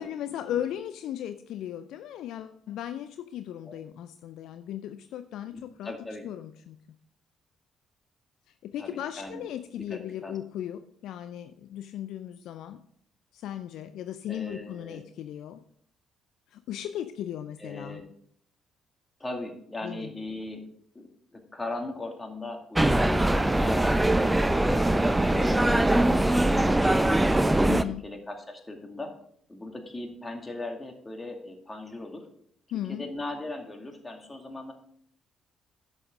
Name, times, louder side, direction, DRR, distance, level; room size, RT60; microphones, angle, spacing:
voice 1, 0.0-5.9 6.2-6.8 8.6-12.8 13.3-15.6 16.5-18.0 19.8-20.1 27.7-28.0 32.7-33.1, left 11 dB, 65° left, 11 dB, 0.4 m, -36 dB
voice 2, 5.4-6.3 8.8-9.5 9.8-10.4 14.3-15.0 17.6-18.1 19.2-20.7 20.9-27.2 27.7-29.1 29.5-32.3 32.9-34.7, left 2 dB, 20° left, 3 dB, 2.3 m, -39 dB
sound 1, 22.7-27.8, right 1 dB, 10° right, 0.6 m, -22 dB
11.0 x 7.6 x 3.7 m, 0.64 s
figure-of-eight pair, 45°, 0 cm